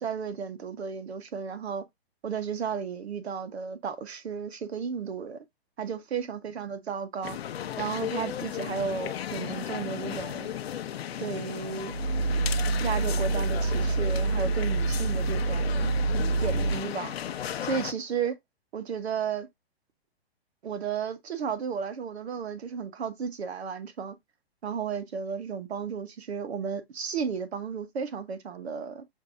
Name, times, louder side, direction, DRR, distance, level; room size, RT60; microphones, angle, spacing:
voice 1, 0.0-1.8 2.2-5.4 5.8-7.4 7.8-10.6 11.2-11.9 12.8-15.9 16.4-17.2 17.6-18.3 18.7-19.5 20.6-24.2 24.6-29.0, right 6 dB, 85° right, 1.1 m, -33 dB
sound 1, 7.2-17.9, left 10 dB, 70° left, 0.7 m, -35 dB
Growling, 11.9-16.8, right 3 dB, 70° right, 2.2 m, -27 dB
6.6 x 2.7 x 2.5 m
hypercardioid pair, 165°, 31 cm